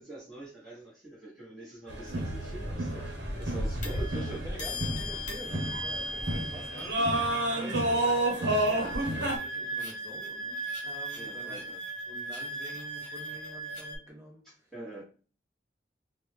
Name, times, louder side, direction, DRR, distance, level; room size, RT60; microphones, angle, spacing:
voice 1, 0.0-4.7 7.6-7.9 11.1-11.8 14.4-15.0, right 2 dB, 5° left, 1.1 m, -45 dB
sound 1, 1.9-9.4, right 1 dB, 70° right, 0.9 m, -30 dB
sound 2, 2.3-2.4 3.8-14.0, right 1 dB, 45° left, 1.0 m, -38 dB
voice 2, 3.6-11.7 12.1-14.5, right 1 dB, 15° right, 0.7 m, -47 dB
3.4 x 2.1 x 3.2 m
head